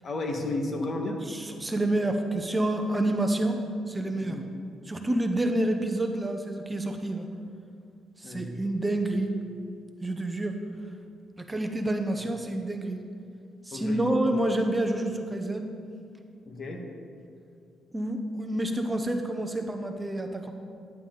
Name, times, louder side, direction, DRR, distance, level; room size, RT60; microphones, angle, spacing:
voice 1, 0.0-1.2 4.2-4.4 8.2-8.5 13.7-14.4 16.4-16.9, left 2 dB, 45° left, 2 dB, 1.6 m, -33 dB
voice 2, 1.3-3.6 3.9-4.4 4.9-7.3 8.2-9.3 10.0-10.6 11.4-13.0 13.6-15.7 17.9-20.5, right 1 dB, 15° right, 5 dB, 0.8 m, -28 dB
sound 1, 9.1-10.8, right 3 dB, 70° right, 0.6 m, -49 dB
11.0 x 9.9 x 3.9 m, 2.3 s
cardioid pair, 90°, 0 cm